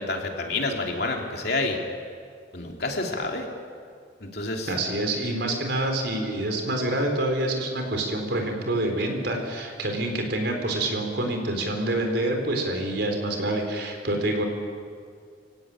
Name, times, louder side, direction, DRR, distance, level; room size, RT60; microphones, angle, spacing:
voice 1, 0.0-1.8 2.5-3.5 4.2-4.7, left 2 dB, 60° left, 1 dB, 3.2 m, -28 dB
voice 2, 4.7-14.4, right 1 dB, 65° right, 3 dB, 4.3 m, -27 dB
25.5 x 16.5 x 9.0 m, 2.2 s
head